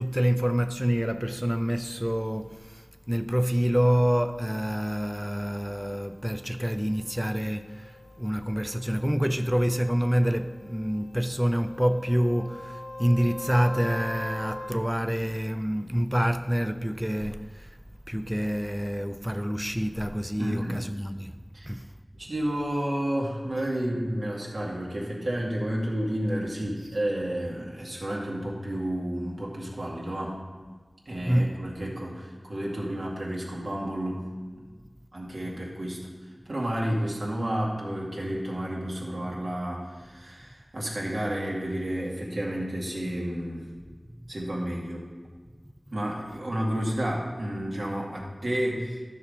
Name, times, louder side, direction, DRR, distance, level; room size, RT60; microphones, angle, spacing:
voice 1, 0.0-17.7 18.1-21.4 21.7-21.9 31.3-31.6, equal, 5° right, 0.4 m, -27 dB
sound 1, 5.8-14.7, left 2 dB, 70° left, 1.2 m, -42 dB
voice 2, 20.4-20.8 21.5-21.7 22.1-30.4 31.1-34.3 34.6-34.7 35.1-36.0 36.5-43.7 44.3-45.1 45.9-49.0, right 1 dB, 85° right, 2.2 m, -31 dB
12.5 x 6.1 x 5.0 m
wide cardioid pair, 55°, 0 cm